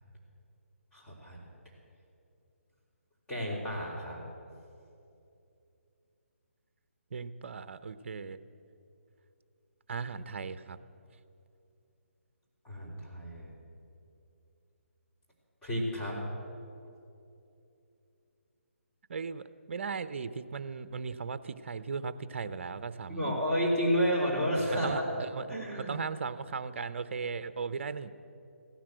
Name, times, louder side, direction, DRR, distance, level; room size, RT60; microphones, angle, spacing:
voice 1, 0.9-1.4 3.3-4.2 12.6-13.5 15.6-16.2 23.1-24.9 25.5-26.0, equal, 10° left, -6 dB, 3.5 m, -31 dB
voice 2, 7.1-8.4 9.9-10.8 19.1-23.3 24.7-25.5 25.9-28.1, right 5 dB, 55° right, 13 dB, 0.7 m, -37 dB
16.0 x 10.0 x 7.9 m, 2.7 s
figure-of-eight pair, 150°, 7 cm